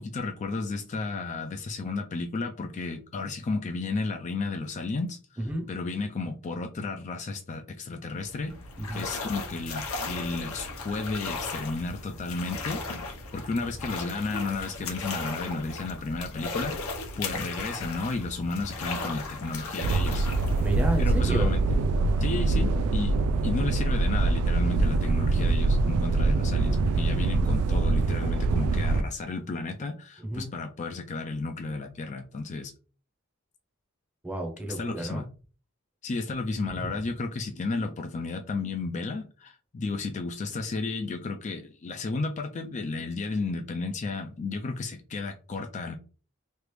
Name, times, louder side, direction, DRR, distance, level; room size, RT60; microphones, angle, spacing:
voice 1, 0.0-5.2 5.7-8.5 8.9-12.8 13.3-20.6 21.0-21.6 22.2-32.7 34.8-35.2 36.0-46.0, left 3 dB, 35° left, 5 dB, 0.3 m, -33 dB
voice 2, 5.4-5.7 8.8-9.1 20.6-21.5 30.2-30.5 34.2-35.3 36.7-37.0, right 1 dB, 10° right, 1 dB, 0.7 m, -31 dB
sound 1, 8.1-21.8, left 3 dB, 75° left, 0.8 m, -36 dB
sound 2, 19.8-29.0, right 3 dB, 80° right, 0.3 m, -24 dB
3.2 x 2.4 x 3.1 m, 0.39 s
head